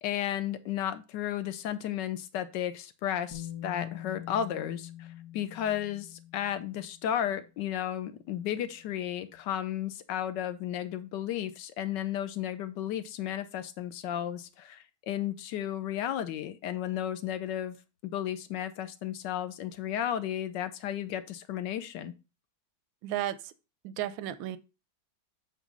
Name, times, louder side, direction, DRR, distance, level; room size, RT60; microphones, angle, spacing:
voice 1, 0.0-5.1 5.3-17.8 18.0-22.1, left 10 dB, 70° left, 1.3 m, -33 dB
Bass guitar, 3.3-7.2 8.4-8.5, left 12 dB, 55° left, 1.7 m, -44 dB
voice 2, 23.0-23.5 23.8-24.6, right 13 dB, 85° right, 1.4 m, -33 dB
8.2 x 3.0 x 5.3 m
omnidirectional pair, 2.1 m